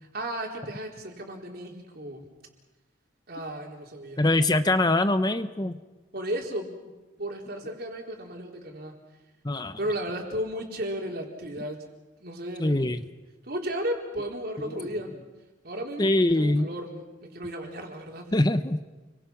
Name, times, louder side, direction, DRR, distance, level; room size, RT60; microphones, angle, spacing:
voice 1, 0.1-2.3 3.3-4.2 6.1-6.7 7.2-9.0 9.8-11.8 12.2-12.9 13.4-15.1 15.6-18.3, equal, 55° right, 1 dB, 4.3 m, -34 dB
voice 2, 4.2-5.8 9.4-9.8 12.6-13.0 14.6-14.8 16.0-16.7 18.3-18.8, left 2 dB, 20° left, 10 dB, 0.8 m, -23 dB
30.0 x 23.5 x 6.0 m, 1.1 s
head